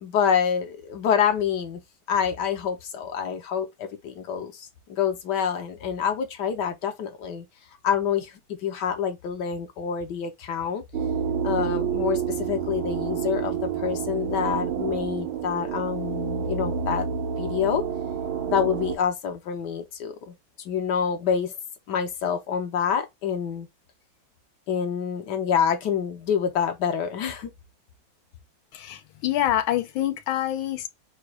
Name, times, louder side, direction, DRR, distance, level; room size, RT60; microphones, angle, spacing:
voice 1, 0.0-1.8 2.1-7.5 7.8-10.8 11.4-17.1 17.4-17.8 18.5-20.3 20.6-21.5 21.9-23.7 24.7-27.5, left 7 dB, 65° left, 1.2 m, -27 dB
sound 1, 10.9-19.0, right 7 dB, 85° right, 1.7 m, -29 dB
voice 2, 28.7-30.9, left 12 dB, 85° left, 1.4 m, -26 dB
4.0 x 2.2 x 4.6 m
omnidirectional pair, 2.2 m